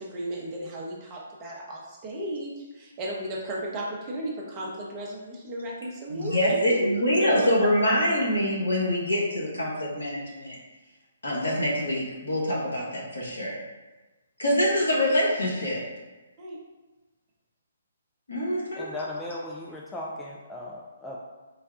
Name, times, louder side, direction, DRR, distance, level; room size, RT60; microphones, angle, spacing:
voice 1, 0.0-6.9 7.2-7.3 16.4-16.6, right 1 dB, 25° right, -3 dB, 0.8 m, -35 dB
voice 2, 6.1-10.5 11.2-13.6 14.4-15.8 18.3-18.9, left 1 dB, 75° left, -5 dB, 1.3 m, -25 dB
voice 3, 18.8-21.2, left 1 dB, 10° left, -4 dB, 0.4 m, -37 dB
4.0 x 2.2 x 3.6 m, 1.2 s
figure-of-eight pair, 130°, 0 cm